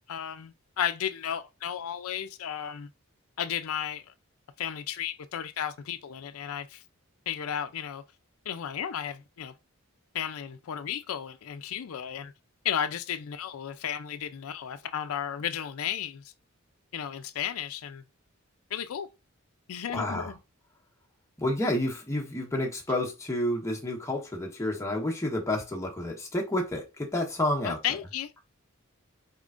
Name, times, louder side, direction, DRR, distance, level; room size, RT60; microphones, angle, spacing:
voice 1, 0.1-2.9 3.4-4.1 4.6-6.8 7.3-8.0 8.5-9.5 10.1-12.3 12.6-16.3 16.9-18.0 18.7-19.1 19.7-20.4 27.6-28.3, left 9 dB, 80° left, 0.4 m, -34 dB
voice 2, 19.9-20.3 21.4-27.8, left 1 dB, 15° left, 1.0 m, -30 dB
4.3 x 3.6 x 2.5 m
head